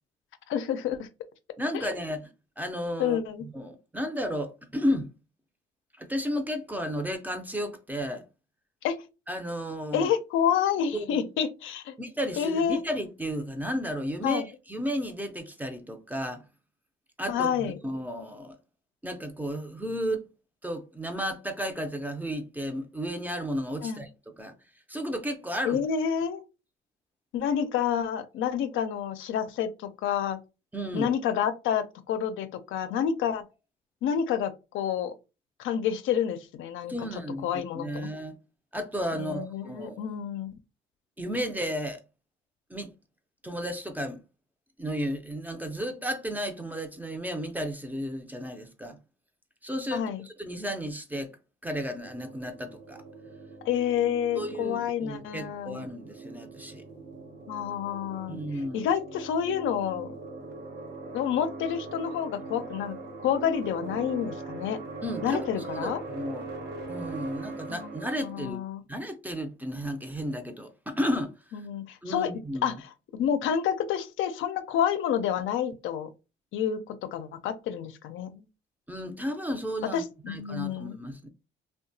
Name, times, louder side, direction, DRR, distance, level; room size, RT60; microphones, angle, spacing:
voice 1, 0.5-1.1 1.7-1.8 3.0-3.4 8.8-9.0 9.9-11.9 12.4-12.8 14.2-14.5 17.3-17.8 23.8-24.0 25.6-26.4 27.3-30.4 30.9-33.4 34.0-35.1 35.6-36.9 37.4-38.1 39.1-40.6 49.9-50.2 53.6-55.8 57.5-58.4 58.7-60.1 61.1-63.0 63.2-64.8 65.2-66.0 67.7-67.9 68.2-68.8 71.5-72.3 72.6-76.1 76.5-78.4 79.9-81.0, left 8 dB, 80° left, 0.4 m, -29 dB
voice 2, 1.6-5.1 6.0-8.2 9.3-10.1 10.9-11.2 12.0-14.4 14.7-16.4 17.2-18.6 19.0-20.3 20.6-24.1 24.4-24.5 24.9-25.8 30.7-31.1 36.9-38.4 38.7-40.0 41.2-42.0 42.7-42.9 43.4-44.2 44.8-49.0 49.6-51.3 51.6-53.0 54.3-56.8 58.3-58.9 65.0-66.5 66.9-68.6 68.9-71.6 72.0-72.8 78.9-81.3, equal, 10° right, 0.5 m, -33 dB
sound 1, 52.0-68.5, right 3 dB, 60° right, 0.9 m, -41 dB
2.8 x 2.2 x 2.6 m
cardioid pair, 90°, 20 cm